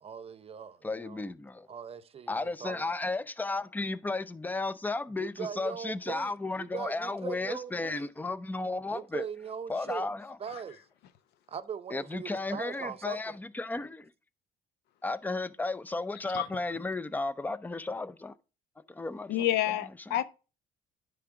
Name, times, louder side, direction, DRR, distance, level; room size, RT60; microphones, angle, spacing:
voice 1, 0.0-1.2 1.7-2.3 2.6-2.9 5.2-8.1 8.9-10.1 10.4-10.8 11.5-13.2, right 7 dB, 35° right, 0.6 m, -40 dB
voice 2, 0.8-1.7 2.3-9.3 9.7-10.4 11.9-14.1 15.0-18.4 18.9-19.5 20.1-20.2, left 3 dB, 10° left, 0.5 m, -34 dB
voice 3, 19.3-20.2, left 12 dB, 85° left, 0.7 m, -29 dB
9.9 x 3.5 x 4.8 m
cardioid pair, 110°, 17 cm